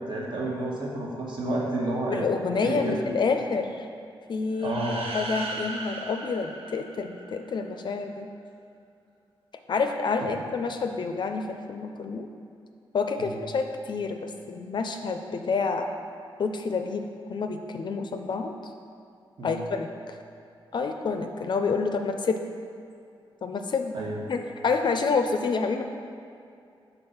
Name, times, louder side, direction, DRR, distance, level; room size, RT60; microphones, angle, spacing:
voice 1, 0.1-3.0 4.6-5.0 10.2-10.3 13.2-13.4 19.4-19.7 23.9-24.2, right 2 dB, 55° right, -3 dB, 1.2 m, -30 dB
voice 2, 2.1-3.9 4.3-8.3 9.7-12.3 12.9-15.9 16.4-18.6 19.4-20.2 20.7-22.4 23.4-24.0 24.3-25.8, left 4 dB, 50° left, 5 dB, 0.4 m, -28 dB
sound 1, 4.5-7.5, right 2 dB, 85° right, 0.6 m, -37 dB
5.3 x 4.1 x 5.5 m, 2.5 s
cardioid pair, 85°, 10 cm